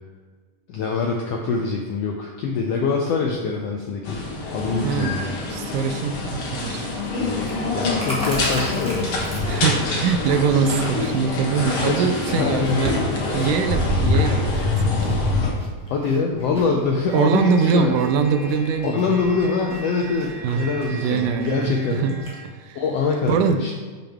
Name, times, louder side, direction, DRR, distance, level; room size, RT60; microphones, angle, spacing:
voice 1, 0.7-4.2 4.5-5.3 7.7-9.0 9.4-9.7 10.6-10.8 11.9-12.1 12.4-12.8 15.9-18.1 18.9-22.1 22.7-23.7, left 4 dB, 85° left, 0 dB, 1.4 m, -24 dB
sound 1, 4.0-15.5, left 2 dB, 55° left, 1.7 m, -25 dB
voice 2, 4.8-6.9 9.5-13.0 13.3-15.2 17.1-19.3 20.4-22.1 22.4-22.8 23.3-23.6, right 6 dB, 85° right, 7 dB, 2.0 m, -23 dB
Chewing mastication, 6.8-22.4, equal, 5° left, 0.6 m, -40 dB
sound 2, 17.1-22.4, right 2 dB, 35° right, 0.9 m, -39 dB
6.9 x 5.7 x 3.5 m, 1.5 s
omnidirectional pair, 3.5 m